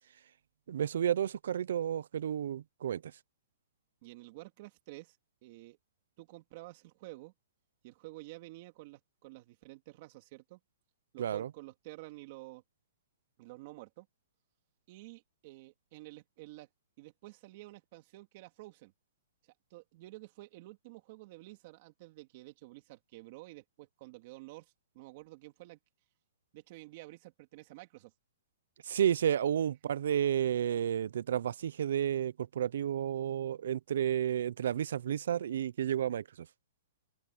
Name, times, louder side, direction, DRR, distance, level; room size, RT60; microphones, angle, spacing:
voice 1, 0.7-3.1 11.2-11.5 28.8-36.5, right 9 dB, 70° right, 0.6 m, -31 dB
voice 2, 4.0-5.2 5.4-5.8 6.2-7.3 7.8-10.6 11.1-12.6 13.4-14.1 14.9-16.7 17.0-18.9 19.7-25.8 26.5-28.1, right 20 dB, 40° right, 2.9 m, -50 dB
hypercardioid pair, 160°, 0 cm